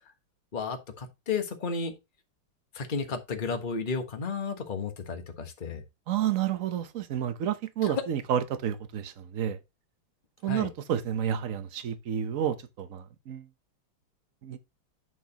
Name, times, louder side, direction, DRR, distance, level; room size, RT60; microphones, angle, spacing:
voice 1, 0.5-1.9 2.7-5.8 7.8-7.9 10.5-10.7, left 5 dB, 30° left, 1.3 m, -33 dB
voice 2, 6.1-9.6 10.4-13.5 14.4-14.6, right 9 dB, 55° right, 1.0 m, -30 dB
8.9 x 6.3 x 2.9 m
omnidirectional pair, 2.2 m